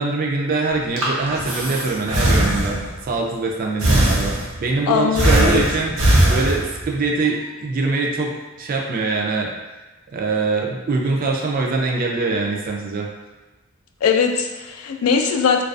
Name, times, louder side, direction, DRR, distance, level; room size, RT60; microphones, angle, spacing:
voice 1, 0.0-2.8 3.0-9.5 10.1-13.1, right 3 dB, 40° right, 0 dB, 0.3 m, -23 dB
Breathing, 0.7-3.0 3.8-4.7 5.1-7.0, right 1 dB, 90° right, 0.6 m, -19 dB
voice 2, 4.9-5.6 14.0-15.6, left 6 dB, 85° left, 4 dB, 0.3 m, -20 dB
2.3 x 2.3 x 2.4 m, 1.1 s
head